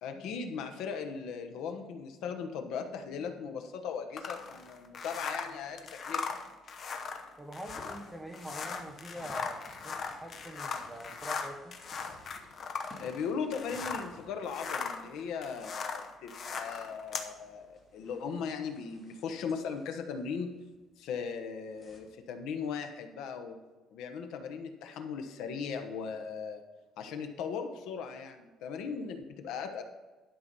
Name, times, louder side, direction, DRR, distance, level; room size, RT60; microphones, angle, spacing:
voice 1, 0.0-6.4 13.0-20.5 21.0-23.6 23.9-26.6 27.0-29.8, left 6 dB, 70° left, 6 dB, 1.1 m, -38 dB
sound 1, 4.2-14.2 14.4-17.3, left 5 dB, 35° left, 0.9 m, -39 dB
voice 2, 7.4-11.8, right 1 dB, 5° right, 2 dB, 0.9 m, -44 dB
sound 2, 7.6-22.0, left 1 dB, 10° left, 2.3 m, -57 dB
11.5 x 5.8 x 5.4 m, 1.2 s
cardioid pair, 175°, 0 cm